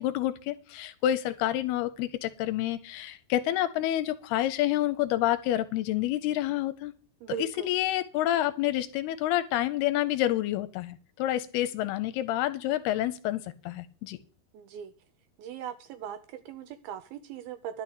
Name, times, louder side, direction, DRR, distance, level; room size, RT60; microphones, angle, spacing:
voice 1, 0.0-6.9 7.4-14.2, left 13 dB, 80° left, 13 dB, 2.4 m, -28 dB
voice 2, 7.2-7.8 14.5-14.9 15.4-17.8, right 8 dB, 80° right, 10 dB, 2.2 m, -39 dB
11.5 x 6.0 x 8.3 m, 0.39 s
omnidirectional pair, 4.9 m